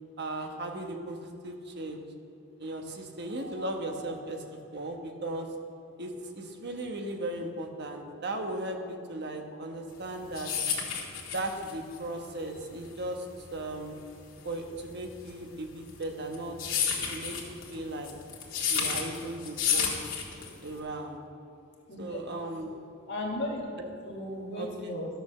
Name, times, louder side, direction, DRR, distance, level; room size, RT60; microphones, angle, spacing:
voice 1, 0.2-2.0 2.6-4.4 4.7-5.5 6.0-10.5 11.3-13.3 13.5-14.0 14.4-16.6 17.1-18.1 18.7-20.1 20.6-21.2 22.0-22.7 23.8-23.9 24.5-24.7, right 1 dB, 55° right, 3 dB, 1.2 m, -37 dB
voice 2, 3.4-4.1 4.5-4.7 21.9-22.0 23.1-23.6 24.0-25.1, left 1 dB, 60° left, -1 dB, 1.7 m, -36 dB
sound 1, 10.0-20.8, left 7 dB, 85° left, 2.0 m, -32 dB
12.5 x 6.9 x 6.7 m, 2.5 s
head